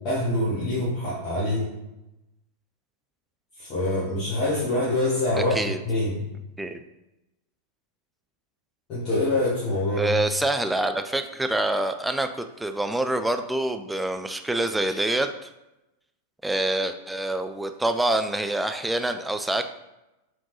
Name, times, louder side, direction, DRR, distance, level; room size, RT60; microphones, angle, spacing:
voice 1, 0.0-1.7 3.6-5.5 5.8-6.2 8.9-10.1, left 1 dB, 35° left, -8 dB, 1.4 m, -25 dB
voice 2, 10.0-15.3 16.4-19.7, right 1 dB, 5° right, 7 dB, 0.3 m, -26 dB
4.6 x 3.6 x 3.1 m, 0.96 s
figure-of-eight pair, 90°, 0 cm